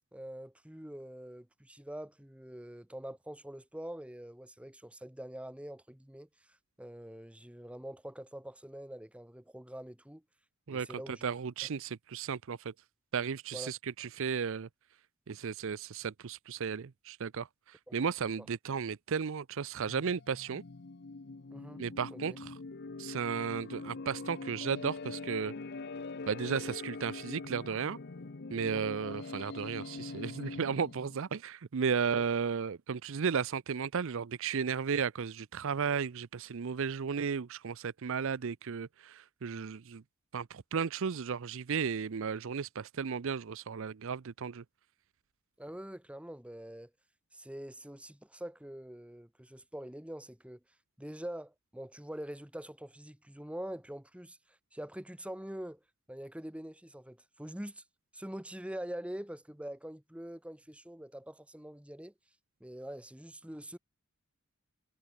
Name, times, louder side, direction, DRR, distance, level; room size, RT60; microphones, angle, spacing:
voice 1, 0.1-10.2 10.7-11.3 13.5-13.7 17.9-18.0 18.4-18.5 21.5-21.8 22.1-22.4 28.7-29.0 45.6-46.9 47.3-50.6 51.0-54.4 54.7-55.8 56.1-57.8 58.1-62.1 62.6-63.8, right 1 dB, 5° right, 1.1 m, -44 dB
voice 2, 10.7-12.7 13.1-14.7 15.3-20.6 21.8-22.5 23.0-25.5 26.3-28.0 28.5-40.0 40.3-44.6, right 6 dB, 65° right, 0.5 m, -34 dB
sound 1, 19.9-31.2, left 3 dB, 50° left, 0.8 m, -43 dB
head